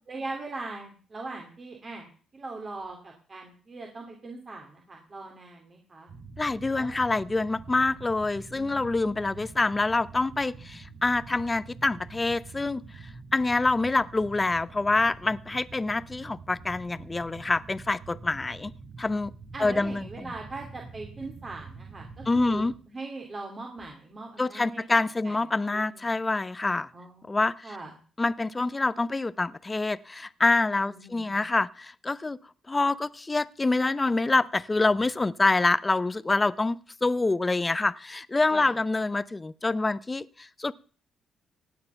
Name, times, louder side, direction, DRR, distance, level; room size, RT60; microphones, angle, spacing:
voice 1, 0.1-2.1 2.3-6.1 6.8-7.0 8.5-9.1 19.5-24.8 25.2-25.4 25.7-26.0 26.9-27.9 30.9-31.5 38.5-38.7, right 3 dB, 35° right, 1 dB, 3.0 m, -41 dB
sound 1, 6.1-22.7, right 4 dB, 55° right, 6.9 m, -46 dB
voice 2, 6.4-12.8 13.3-18.7 19.0-19.3 19.6-20.0 22.3-22.7 24.4-26.9 27.3-27.7 28.2-32.4 32.7-40.7, left 3 dB, 20° left, 17 dB, 0.7 m, -26 dB
17.0 x 9.4 x 5.7 m, 0.42 s
cardioid pair, 90°, 0 cm